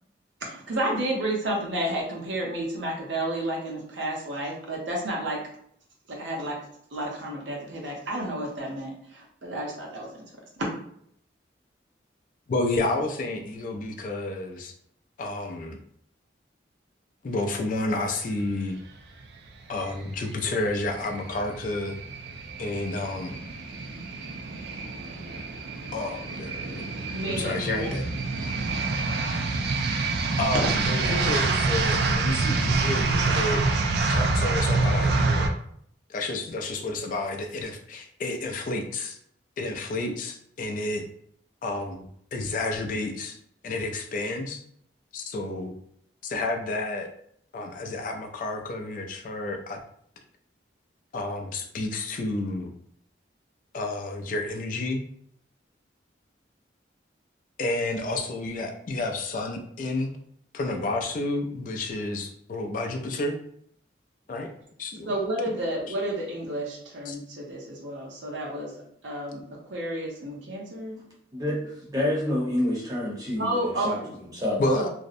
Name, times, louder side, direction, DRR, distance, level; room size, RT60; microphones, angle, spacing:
voice 1, 0.4-5.4 6.1-6.6 6.9-10.3 27.1-27.9 65.0-69.4 69.7-71.0 73.4-74.2 74.7-74.9, right 1 dB, 85° right, -2 dB, 0.7 m, -31 dB
voice 2, 12.5-14.7 15.2-15.8 17.2-18.8 19.7-22.0 22.6-23.4 25.9-26.9 27.3-28.1 30.4-33.6 34.1-35.5 36.1-39.2 39.6-41.0 41.6-43.4 43.6-44.6 45.1-45.7 46.2-47.1 47.5-49.8 51.1-52.7 53.7-55.0 57.6-60.1 60.5-63.4 64.3-64.5 64.8-65.1 65.9-66.0 67.1-67.2 74.6-74.9, left 2 dB, 45° left, 3 dB, 0.3 m, -30 dB
sound 1, 19.7-35.5, right 3 dB, 60° right, 0.3 m, -27 dB
voice 3, 71.3-74.0 74.3-74.6, left 1 dB, 20° right, -4 dB, 0.7 m, -28 dB
2.5 x 2.0 x 2.5 m, 0.68 s
head